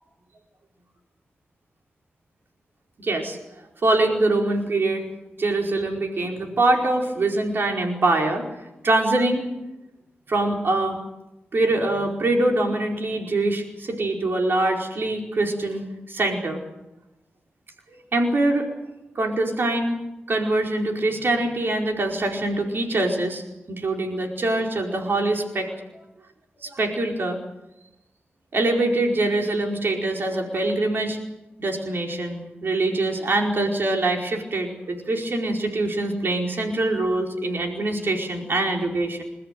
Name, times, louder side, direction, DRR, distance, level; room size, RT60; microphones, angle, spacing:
voice 1, 3.0-3.4 3.8-5.1 5.4-8.4 8.8-9.4 10.3-11.0 11.5-16.6 18.1-18.7 19.1-20.0 20.3-23.4 23.7-25.7 26.6-27.4 28.5-31.2 31.6-39.2, right 2 dB, 60° right, 1 dB, 4.8 m, -24 dB
29.0 x 13.5 x 9.3 m, 0.95 s
wide cardioid pair, 80°, 4 cm